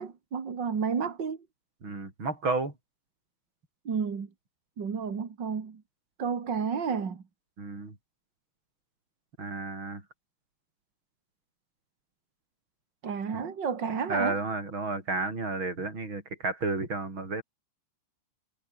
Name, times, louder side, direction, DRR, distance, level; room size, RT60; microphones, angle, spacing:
voice 1, 0.0-1.4 3.8-4.3 4.8-5.8 6.2-7.2 13.0-14.4, right 6 dB, 40° right, 1.5 m, -31 dB
voice 2, 1.8-2.7 7.6-7.9 9.4-10.0 14.1-17.4, right 3 dB, 25° right, 6.1 m, -32 dB
omnidirectional pair, 5.4 m